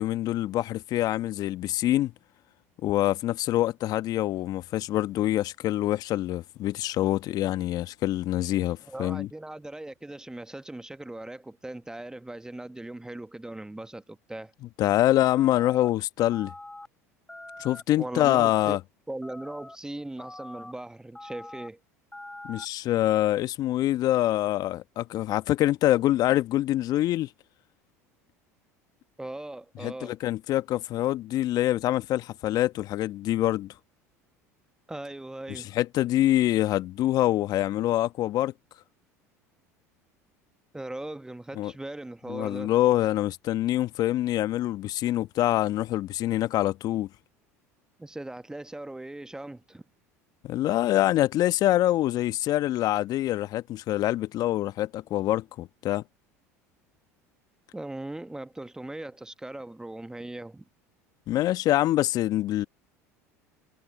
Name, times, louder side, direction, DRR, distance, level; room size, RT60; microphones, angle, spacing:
voice 1, 0.0-2.1 2.8-9.3 14.8-16.5 17.6-18.8 22.4-27.3 29.8-33.7 35.5-38.5 41.6-41.7 42.3-47.1 50.4-56.0 61.3-62.7, left 14 dB, 50° left, 1.3 m, -25 dB
voice 2, 8.9-14.5 18.0-18.8 19.1-21.8 29.2-30.2 34.9-35.8 40.7-42.7 48.0-49.8 57.7-60.6, right 1 dB, 10° right, 1.3 m, -39 dB
sound 1, 15.4-15.9 16.3-16.9 17.3-17.8 18.2-18.8 19.2-19.8 20.2-20.7 21.1-21.7 22.1-22.7, left 2 dB, 10° left, 1.4 m, -44 dB
hypercardioid pair, 75°, 8 cm